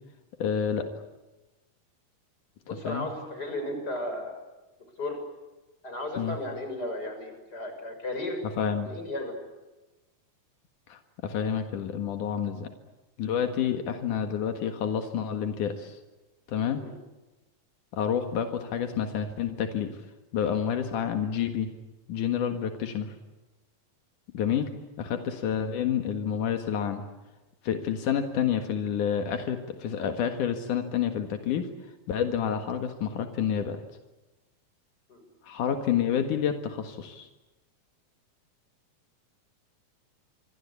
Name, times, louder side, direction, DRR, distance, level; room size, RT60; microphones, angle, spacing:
voice 1, 0.4-0.9 2.8-3.1 6.2-6.4 8.6-8.9 10.9-12.7 13.2-16.0 16.5-16.8 17.9-19.9 20.3-21.7 22.1-23.1 24.3-24.7 25.0-27.0 27.6-31.7 32.1-33.8 35.4-37.3, left 8 dB, 85° left, 6 dB, 3.2 m, -29 dB
voice 2, 2.6-4.4 5.0-5.2 5.8-8.4 8.8-9.4 16.8-16.9 35.1-35.2, left 1 dB, 30° left, 6 dB, 7.0 m, -34 dB
27.5 x 24.0 x 8.4 m, 1.1 s
omnidirectional pair, 3.5 m